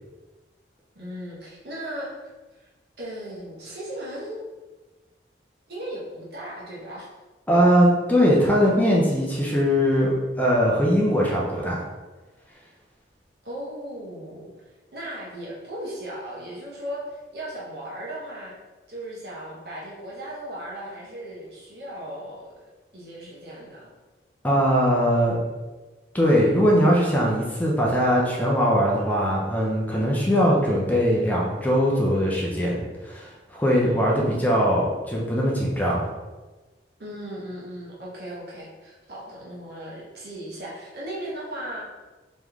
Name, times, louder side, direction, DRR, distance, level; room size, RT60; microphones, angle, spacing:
voice 1, 0.9-2.2 2.6-2.7 3.0-4.4 5.7-7.1 13.4-14.5 14.9-18.6 18.9-22.5 22.9-23.9 33.8-34.5 37.0-41.9, right 1 dB, 60° right, -5 dB, 1.1 m, -37 dB
voice 2, 7.5-11.8 24.4-25.5 26.1-36.1, equal, 10° left, -4 dB, 0.6 m, -21 dB
3.6 x 3.1 x 3.5 m, 1.2 s
head